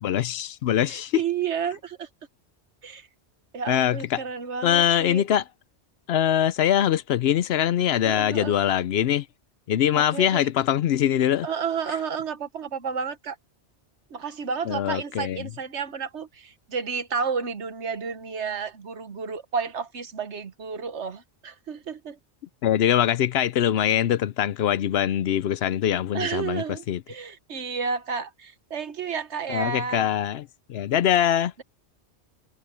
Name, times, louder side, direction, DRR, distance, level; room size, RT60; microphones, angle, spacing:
voice 1, 0.0-1.2 3.7-4.2 4.6-5.4 6.1-9.2 9.7-11.5 14.7-15.5 22.6-27.0 29.5-31.5, left 10 dB, 70° left, 0.8 m, -23 dB
voice 2, 0.9-2.1 2.8-3.1 3.5-5.2 8.0-8.6 9.9-10.5 11.4-13.4 14.1-22.2 26.1-30.1, right 6 dB, 80° right, 1.5 m, -31 dB
omnidirectional pair, 1.2 m